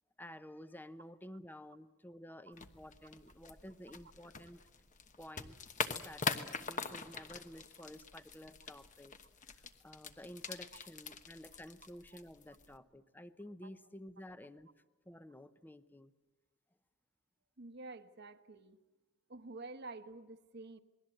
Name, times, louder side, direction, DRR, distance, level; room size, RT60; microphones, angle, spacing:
voice 1, 0.2-4.6 5.2-5.6 5.8-9.2 9.5-14.7 15.0-16.1, left 1 dB, 10° left, 12 dB, 0.8 m, -52 dB
sound 1, 2.5-12.8, left 5 dB, 40° left, 1.1 m, -44 dB
voice 2, 17.6-18.8 19.3-20.8, right 3 dB, 55° right, 10 dB, 1.2 m, -49 dB
28.0 x 20.5 x 7.8 m, 1.1 s
head